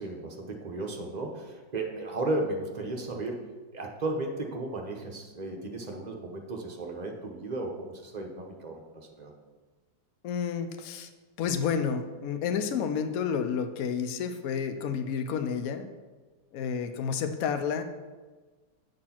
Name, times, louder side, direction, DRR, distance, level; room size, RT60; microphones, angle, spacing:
voice 1, 0.0-3.5 3.7-9.3, right 2 dB, 30° right, 1 dB, 0.8 m, -35 dB
voice 2, 10.2-11.1 11.4-15.9 16.5-17.8, left 7 dB, 65° left, 8 dB, 1.0 m, -30 dB
8.8 x 4.4 x 5.8 m, 1.3 s
omnidirectional pair, 2.0 m